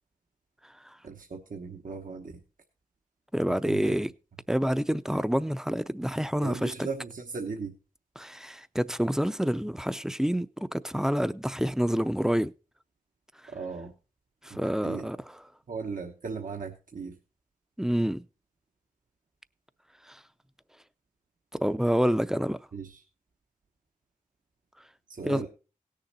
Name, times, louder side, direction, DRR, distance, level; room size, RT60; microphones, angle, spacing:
voice 1, 1.0-2.4 3.5-4.0 6.4-7.7 13.5-13.9 14.5-15.1 15.7-17.2 22.7-23.0 25.1-25.5, right 5 dB, 75° right, 1.1 m, -37 dB
voice 2, 3.3-4.1 4.5-6.9 8.2-12.5 14.4-15.2 17.8-18.3 20.1-20.2 21.5-22.6 25.2-25.4, equal, 5° right, 0.5 m, -28 dB
17.5 x 6.7 x 4.1 m
wide cardioid pair, 85°, 14 cm